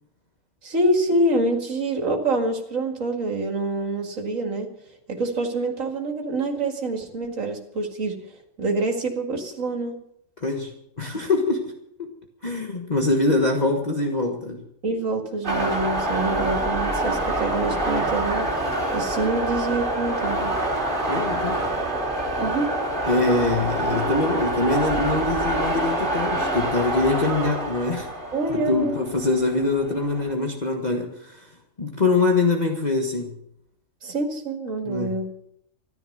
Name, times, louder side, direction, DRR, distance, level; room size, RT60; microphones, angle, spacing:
voice 1, 0.6-4.7 5.1-8.2 8.6-10.0 14.8-18.5 18.9-20.5 22.4-22.7 28.3-29.0 34.0-35.3, right 2 dB, 70° right, 3 dB, 2.5 m, -26 dB
voice 2, 10.4-11.7 12.0-12.1 12.4-14.6 21.1-21.6 23.1-28.1 28.7-31.5 31.8-33.4 34.8-35.2, left 3 dB, 30° left, 1 dB, 1.6 m, -24 dB
sound 1, 15.4-30.3, right 1 dB, 35° right, 3.1 m, -26 dB
14.0 x 12.0 x 6.7 m, 0.76 s
omnidirectional pair, 1.4 m